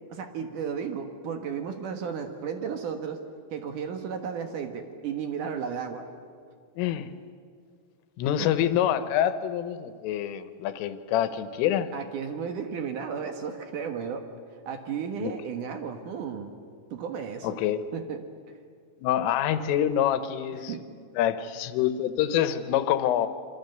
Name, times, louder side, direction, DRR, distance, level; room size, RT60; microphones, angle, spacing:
voice 1, 0.1-3.2 3.5-6.0 8.4-8.6 11.9-14.3 14.7-16.6 16.9-17.6 17.9-18.3 20.7-20.9, right 7 dB, 65° right, 6 dB, 2.1 m, -34 dB
voice 2, 6.8-7.1 8.2-11.9 15.2-15.3 17.4-17.8 19.0-20.7 21.2-23.3, left 10 dB, 90° left, 11 dB, 3.7 m, -26 dB
27.5 x 24.5 x 8.0 m, 2.1 s
omnidirectional pair, 5.6 m